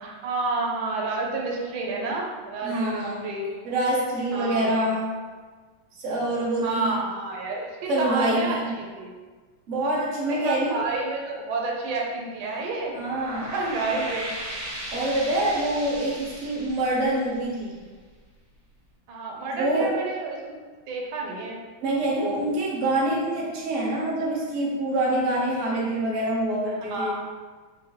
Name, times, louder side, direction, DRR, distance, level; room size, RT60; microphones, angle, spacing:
voice 1, 0.0-3.4 4.3-5.0 6.6-9.1 10.4-12.9 13.5-14.4 19.1-20.4 20.9-21.6 22.2-22.4 26.9-27.2, right 3 dB, 90° right, -1 dB, 1.5 m, -30 dB
voice 2, 2.6-3.3 3.6-5.1 5.9-6.9 7.9-8.8 9.7-10.8 12.9-13.5 13.9-14.0 14.9-17.8 19.5-19.9 21.8-27.2, right 1 dB, 50° right, -5 dB, 1.0 m, -26 dB
sound 1, 12.9-18.1, right 1 dB, 75° right, 2.2 m, -37 dB
4.6 x 2.7 x 3.0 m, 1.4 s
omnidirectional pair, 2.1 m